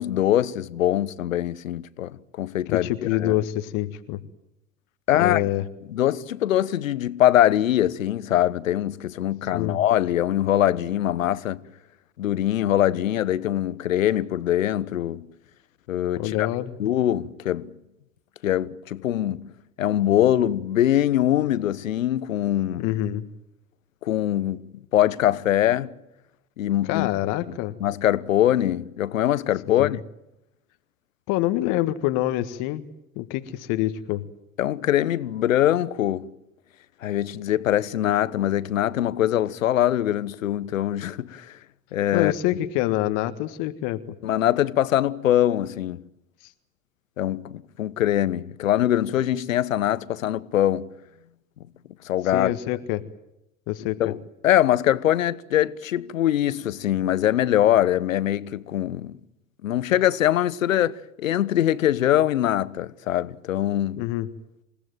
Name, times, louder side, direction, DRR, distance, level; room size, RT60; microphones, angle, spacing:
voice 1, 0.0-3.4 5.1-5.4 5.9-11.6 12.2-15.3 15.9-16.5 16.8-17.7 18.4-19.5 19.8-22.8 24.0-25.9 26.6-27.1 27.8-30.0 34.6-36.3 37.0-41.5 41.9-42.3 44.2-46.0 47.2-50.9 52.0-52.5 54.0-54.2 54.4-59.2 59.6-64.0, left 12 dB, 75° left, 1.2 m, -23 dB
voice 2, 2.7-4.2 5.2-5.7 9.5-9.8 16.2-16.7 22.8-23.2 26.8-27.7 29.7-30.0 31.3-32.9 33.1-34.2 42.1-44.0 52.3-53.0 53.7-54.0 64.0-64.3, left 15 dB, 50° left, 1.6 m, -26 dB
28.5 x 17.5 x 9.2 m
figure-of-eight pair, 80°, 40 cm